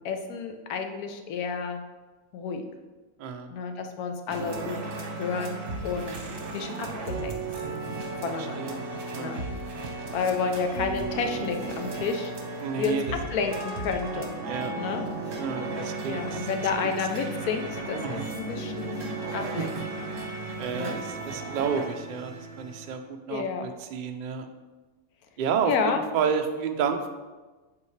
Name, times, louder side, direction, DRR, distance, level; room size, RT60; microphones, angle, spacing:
voice 1, 0.0-1.8 2.3-2.6 3.5-4.8 5.2-7.8 8.2-8.8 9.2-9.4 10.1-12.3 12.8-13.0 13.3-14.3 14.8-15.1 16.1-19.0 19.3-20.2 20.7-21.0 23.3-23.7 25.6-26.0, left 5 dB, 85° left, 5 dB, 1.2 m, -31 dB
voice 2, 3.2-3.5 8.4-8.8 9.1-9.4 12.6-13.0 14.4-14.7 15.4-16.5 18.0-18.3 19.6-19.7 20.6-24.5 25.4-25.7 26.1-27.1, right 6 dB, 80° right, 6 dB, 0.4 m, -30 dB
sound 1, 4.3-22.9, right 3 dB, 60° right, 1.3 m, -35 dB
8.3 x 4.8 x 3.2 m, 1.2 s
omnidirectional pair, 1.5 m